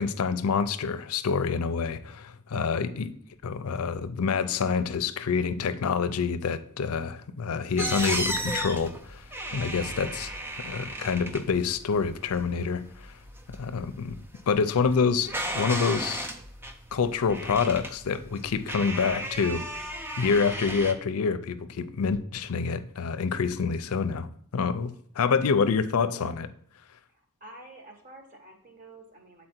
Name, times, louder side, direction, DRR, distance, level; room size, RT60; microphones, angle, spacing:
voice 1, 0.0-3.1 3.4-9.2 9.5-10.3 10.6-13.1 13.5-14.2 14.5-16.3 16.9-19.6 20.2-24.3 24.5-26.5, left 5 dB, 80° left, 0.5 m, -27 dB
voice 2, 2.5-2.9 9.5-10.0 27.1-29.5, right 2 dB, 40° right, 1.3 m, -48 dB
sound 1, 7.8-20.9, right 1 dB, 10° right, 0.5 m, -35 dB
7.7 x 4.2 x 4.4 m
head